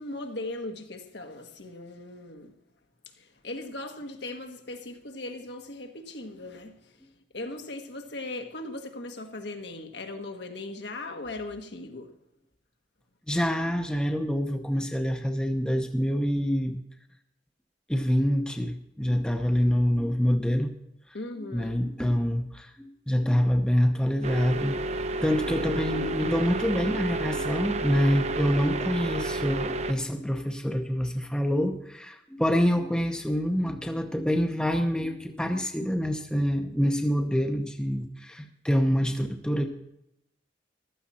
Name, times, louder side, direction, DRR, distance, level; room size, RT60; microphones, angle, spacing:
voice 1, 0.0-2.5 3.4-6.7 7.3-12.1 21.1-21.9, left 2 dB, 70° left, 1.5 m, -38 dB
voice 2, 13.3-16.8 17.9-20.7 21.4-24.8 25.2-39.6, equal, 5° left, 0.8 m, -26 dB
sound 1, 24.2-29.9, right 2 dB, 35° right, 0.6 m, -30 dB
15.0 x 12.5 x 4.2 m
head